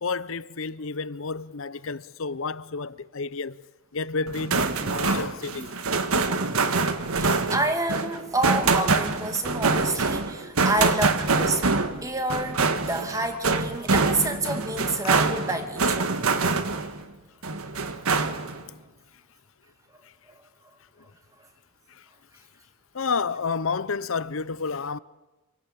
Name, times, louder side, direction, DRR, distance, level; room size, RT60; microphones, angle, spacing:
voice 1, 0.0-3.6 3.9-5.8 21.9-22.0 22.9-25.0, left 4 dB, 70° left, 0.7 m, -30 dB
sound 1, 4.3-17.0 17.4-18.6, right 4 dB, 85° right, 1.6 m, -25 dB
voice 2, 7.1-11.6 12.0-16.1, right 2 dB, 15° right, 2.2 m, -28 dB
27.0 x 18.0 x 8.6 m
head